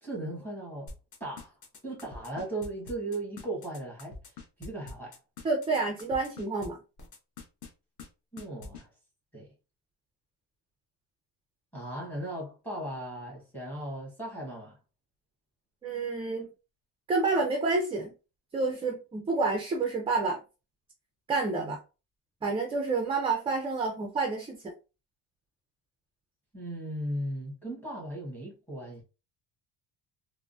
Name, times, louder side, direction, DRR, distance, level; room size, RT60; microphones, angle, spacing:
voice 1, 0.0-0.9 1.2-1.6 1.8-4.2 4.6-5.2 8.3-8.9 9.3-9.5 11.7-14.8 21.6-21.7 26.5-29.0, right 1 dB, 5° left, 1.2 m, -37 dB
sound 1, 0.9-6.7 7.0-7.7 8.0-8.1 8.4-8.8, left 4 dB, 45° left, 0.7 m, -44 dB
voice 2, 5.4-6.8 15.8-16.5 17.1-18.1 18.5-20.4 21.3-21.8 22.4-24.7, right 3 dB, 15° right, 0.3 m, -29 dB
3.3 x 2.0 x 2.5 m
cardioid pair, 170°, 41 cm